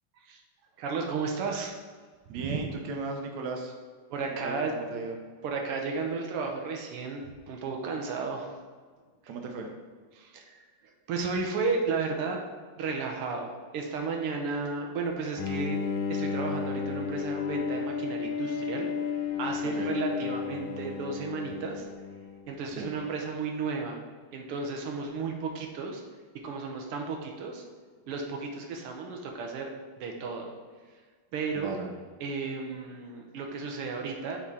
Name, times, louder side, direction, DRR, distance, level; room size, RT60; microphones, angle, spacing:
voice 1, 0.8-1.7 2.3-2.6 4.1-4.7 5.4-8.6 10.1-12.4 12.8-15.8 16.1-18.9 19.4-21.9 22.5-24.0 24.3-26.0 26.4-27.6 28.1-29.7 30.0-30.5 31.3-31.7 32.2-34.4, right 4 dB, 85° right, 2 dB, 1.8 m, -33 dB
voice 2, 2.3-3.7 4.3-5.1 9.3-9.7 19.6-19.9 22.7-22.9 31.5-31.9, right 3 dB, 65° right, 2 dB, 1.4 m, -36 dB
Bowed string instrument, 15.4-22.6, left 6 dB, 75° left, 1.4 m, -33 dB
5.8 x 4.1 x 4.7 m, 1.5 s
omnidirectional pair, 2.4 m